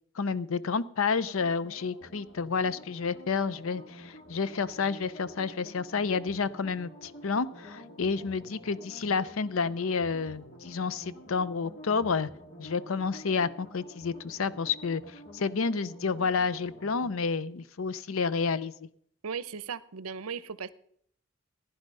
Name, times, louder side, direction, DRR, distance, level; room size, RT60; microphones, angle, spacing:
voice 1, 0.2-12.3 12.6-15.0 15.3-18.9, left 5 dB, 70° left, 18 dB, 0.6 m, -30 dB
sound 1, 1.3-17.2, equal, 40° left, 3.0 m, -49 dB
voice 2, 19.2-20.7, right 6 dB, 85° right, 18 dB, 0.7 m, -37 dB
15.0 x 10.5 x 5.4 m, 0.67 s
head